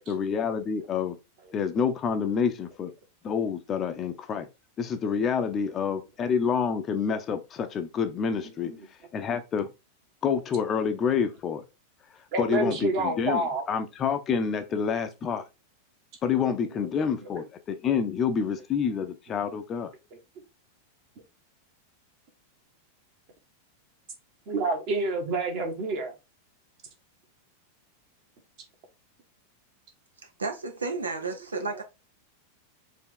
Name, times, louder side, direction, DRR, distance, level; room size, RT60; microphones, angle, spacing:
voice 1, 0.1-1.2 1.5-2.9 3.2-4.5 4.8-8.7 9.1-9.7 10.2-11.6 12.4-13.4 13.7-15.4 16.2-19.9, left 6 dB, 25° left, 0.6 m, -28 dB
voice 2, 12.3-13.6 17.2-17.3 18.4-18.5 24.5-26.1 31.7-31.8, right 2 dB, 45° right, 1.5 m, -28 dB
voice 3, 30.2-31.8, right 3 dB, 75° right, 0.6 m, -32 dB
4.7 x 2.8 x 3.8 m
figure-of-eight pair, 90°, 0 cm